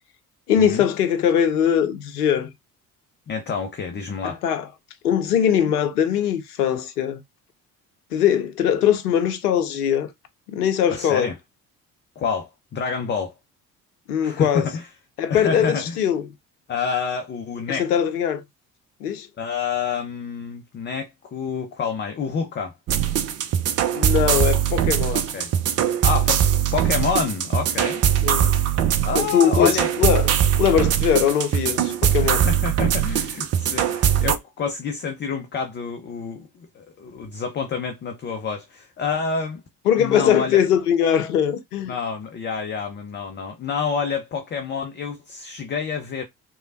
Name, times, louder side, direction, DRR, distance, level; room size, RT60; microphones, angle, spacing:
voice 1, 0.5-2.5 4.2-4.7 5.0-7.2 8.1-10.1 10.5-11.3 14.1-14.7 15.2-16.3 17.7-18.4 19.0-19.3 23.9-25.2 28.2-28.5 29.1-30.3 30.6-32.5 39.9-42.0, left 9 dB, 80° left, 0.7 m, -21 dB
voice 2, 3.3-4.4 10.9-11.3 12.2-13.3 14.2-14.9 15.3-16.0 16.7-17.9 19.4-22.8 25.1-25.5 26.0-26.4 26.7-28.1 29.0-29.9 32.2-39.6 40.0-40.6 41.9-46.2, left 5 dB, 25° left, 0.5 m, -28 dB
sound 1, 22.9-34.4, right 10 dB, 35° right, 0.5 m, -21 dB
3.1 x 2.2 x 2.5 m
figure-of-eight pair, 50°, 45 cm